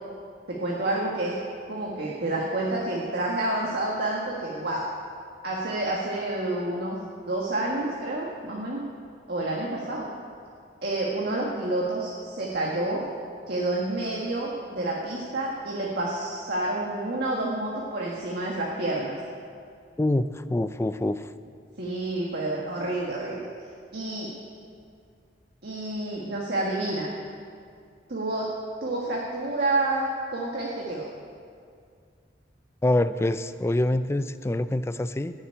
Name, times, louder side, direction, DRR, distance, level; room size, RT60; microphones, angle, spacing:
voice 1, 0.5-1.4 1.7-4.9 5.4-8.8 9.3-10.1 10.8-13.0 13.5-19.2 21.8-23.4 23.9-24.3 25.6-27.1 28.1-28.5 28.8-31.1, right 2 dB, 60° right, -4 dB, 1.6 m, -29 dB
voice 2, 20.0-21.3 32.8-35.3, left 1 dB, 15° left, 12 dB, 0.4 m, -25 dB
14.5 x 7.2 x 8.6 m, 2.2 s
head